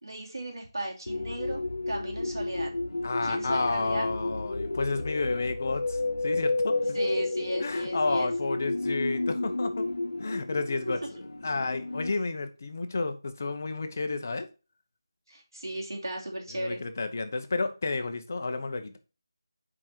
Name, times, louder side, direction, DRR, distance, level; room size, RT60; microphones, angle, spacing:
voice 1, 0.0-2.7 3.2-4.1 6.9-8.3 15.3-16.8, right 1 dB, 80° right, -1 dB, 3.1 m, -36 dB
sound 1, 1.1-12.1, left 2 dB, 75° left, 0.9 m, -31 dB
voice 2, 3.0-7.0 7.6-9.8 10.2-11.0 11.4-14.5 16.5-19.0, left 3 dB, 40° left, 8 dB, 0.9 m, -31 dB
8.6 x 5.0 x 2.9 m, 0.32 s
figure-of-eight pair, 170°, 2 cm